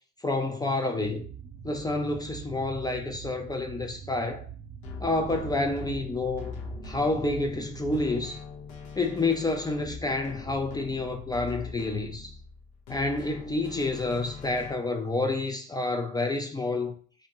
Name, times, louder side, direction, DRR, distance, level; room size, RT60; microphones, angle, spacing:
voice 1, 0.2-1.3 1.6-4.4 5.0-6.5 6.8-8.4 9.0-12.3 12.9-16.9, left 2 dB, 10° left, 0.3 m, -29 dB
sound 1, 1.0-8.1, right 8 dB, 35° right, 0.8 m, -43 dB
sound 2, 4.8-14.7, left 5 dB, 75° left, 0.8 m, -42 dB
2.8 x 2.6 x 2.9 m
hypercardioid pair, 70°, 33 cm